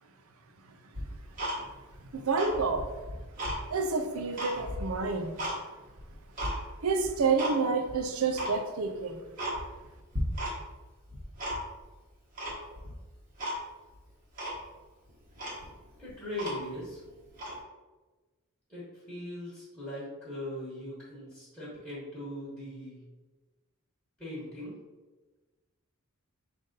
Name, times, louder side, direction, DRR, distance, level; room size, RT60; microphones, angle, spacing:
Tick-tock, 0.9-2.0 2.3-3.6 4.0-5.6 6.0-6.6 7.0-7.6 7.8-7.9 8.3-8.6 9.0-9.1 9.4-9.9 10.1-10.8 11.1-11.9 12.4-12.9 13.4-13.6 13.9-14.0 14.4-14.6 15.1-15.2 15.4-16.9 17.3-17.6, equal, 40° right, 1.2 m, -35 dB
voice 1, 2.1-2.9 3.7-5.4 6.8-9.2, right 4 dB, 70° right, 5 dB, 0.5 m, -29 dB
voice 2, 16.0-17.0 18.7-23.0 24.2-24.8, left 1 dB, 5° left, -9 dB, 1.3 m, -40 dB
5.2 x 2.6 x 3.9 m, 1.2 s
head